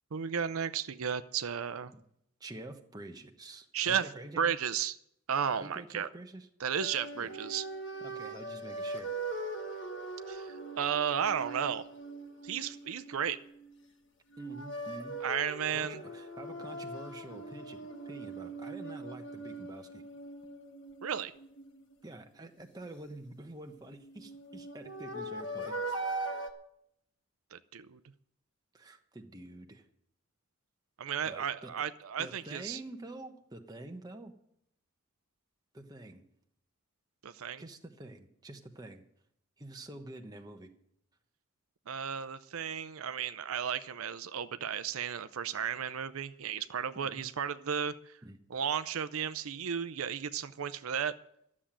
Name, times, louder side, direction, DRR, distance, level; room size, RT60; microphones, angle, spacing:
voice 1, 0.1-1.9 3.7-4.1 4.4-5.0 5.3-6.1 6.6-7.7 10.3-11.9 12.4-13.4 15.2-16.0 21.0-21.3 27.5-28.0 31.0-32.8 37.2-37.6 41.9-48.2 48.5-51.2, right 8 dB, 75° right, 12 dB, 0.6 m, -34 dB
voice 2, 2.4-4.6 5.6-6.5 7.1-7.3 8.0-9.1 14.4-15.2 15.7-20.0 22.0-26.0 28.7-29.9 31.2-31.7 32.2-34.3 35.7-36.2 37.6-39.0 39.6-40.7 46.9-47.3 48.2-48.4, right 1 dB, 15° right, 4 dB, 1.0 m, -47 dB
sound 1, 6.8-13.8 14.3-22.2 23.9-26.5, right 2 dB, 55° left, 1.4 m, -41 dB
12.5 x 7.5 x 10.0 m, 0.73 s
head